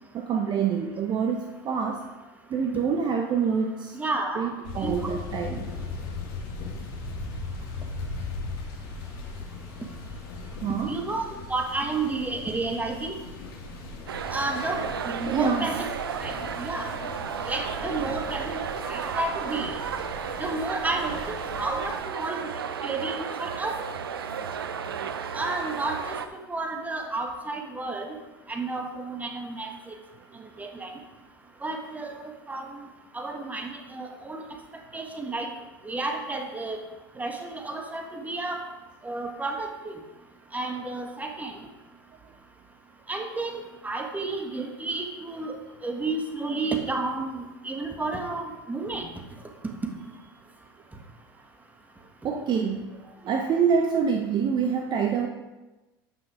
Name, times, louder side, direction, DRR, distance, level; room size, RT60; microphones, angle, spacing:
voice 1, 0.1-2.0 2.5-4.0 4.4-5.7 10.6-10.9 15.3-15.7 22.3-22.4 52.2-55.3, right 6 dB, 40° right, 4 dB, 0.8 m, -26 dB
voice 2, 3.9-4.5 4.8-5.1 10.9-11.2 11.5-13.1 14.3-15.9 16.2-16.9 17.4-19.8 20.4-22.5 22.8-23.8 25.3-26.0 26.5-28.2 28.5-29.9 30.6-30.9 31.6-32.7 33.1-34.4 34.9-35.5 35.8-36.8 37.2-38.6 39.0-40.0 40.5-41.5 43.1-45.6 45.8-49.1, right 3 dB, 15° right, 3 dB, 1.6 m, -31 dB
sound 1, 4.6-22.0, left 3 dB, 60° left, 2.1 m, -38 dB
sound 2, 14.1-26.3, right 7 dB, 85° right, 0.6 m, -33 dB
8.8 x 6.0 x 4.9 m, 1.1 s
hypercardioid pair, 85°, 12 cm